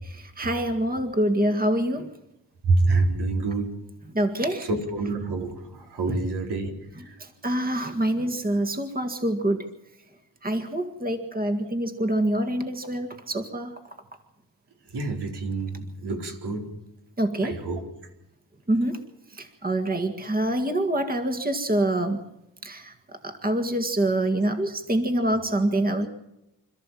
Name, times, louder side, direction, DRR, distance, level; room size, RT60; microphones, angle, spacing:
voice 1, 0.0-2.1 4.1-4.7 7.2-9.6 10.4-13.8 17.2-17.5 18.7-19.0 19.4-22.2 22.6-22.9 23.2-26.1, right 1 dB, 20° right, 7 dB, 1.9 m, -26 dB
voice 2, 2.6-3.7 4.6-7.2 14.9-16.7 17.4-17.8, right 3 dB, 75° right, 3 dB, 4.4 m, -27 dB
26.5 x 14.0 x 7.6 m, 0.89 s
cardioid pair, 105°, 40 cm